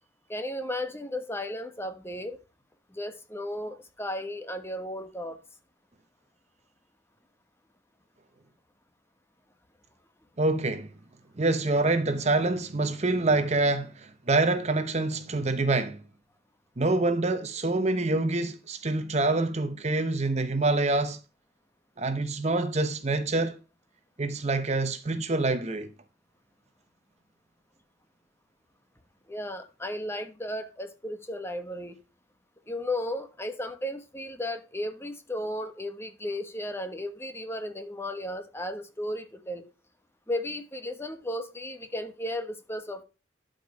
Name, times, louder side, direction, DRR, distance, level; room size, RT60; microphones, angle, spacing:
voice 1, 0.3-2.4 2.9-5.4 29.3-32.0 32.7-39.6 40.3-43.0, left 1 dB, 15° left, 1.2 m, -34 dB
voice 2, 10.4-10.9 11.4-16.0 16.8-21.2 22.0-23.6 24.2-25.9, right 2 dB, 40° right, 0.9 m, -26 dB
12.0 x 5.2 x 4.8 m
head